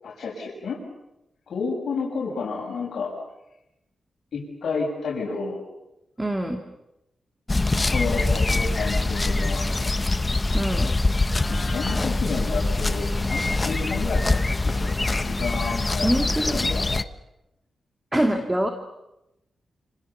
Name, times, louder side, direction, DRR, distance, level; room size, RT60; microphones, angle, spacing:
voice 1, 0.0-0.8 1.5-3.1 4.3-5.6 7.8-9.9 11.5-16.9, left 4 dB, 70° left, -3 dB, 6.8 m, -31 dB
voice 2, 6.2-6.6 10.5-10.9 16.0-16.6 18.1-18.7, right 1 dB, 10° right, 5 dB, 2.4 m, -24 dB
sound 1, 7.5-17.0, left 2 dB, 20° left, 1.1 m, -24 dB
29.5 x 27.0 x 7.2 m, 0.90 s
wide cardioid pair, 120°, 0 cm